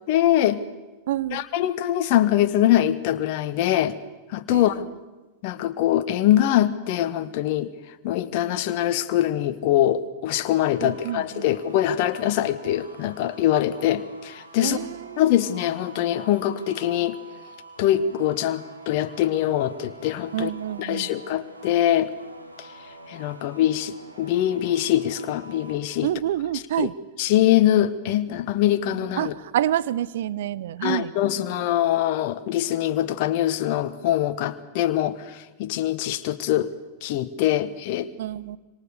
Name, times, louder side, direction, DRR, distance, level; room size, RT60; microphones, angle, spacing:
voice 1, 0.1-0.6 1.3-3.9 4.3-4.9 5.4-7.7 8.0-14.8 15.2-17.2 17.8-20.5 20.8-22.1 22.6-22.7 23.1-26.1 26.8-26.9 27.2-29.3 30.8-36.7 37.0-38.1, left 12 dB, 45° left, 12 dB, 1.2 m, -23 dB
voice 2, 1.1-1.4 4.5-4.9 10.8-11.5 14.6-15.2 20.3-21.1 26.0-26.9 29.2-31.1 38.2-38.6, right 12 dB, 55° right, 18 dB, 0.7 m, -28 dB
sound 1, 10.3-25.7, right 2 dB, 85° right, 3.2 m, -46 dB
26.0 x 25.0 x 6.7 m, 1.2 s
figure-of-eight pair, 90°, 0 cm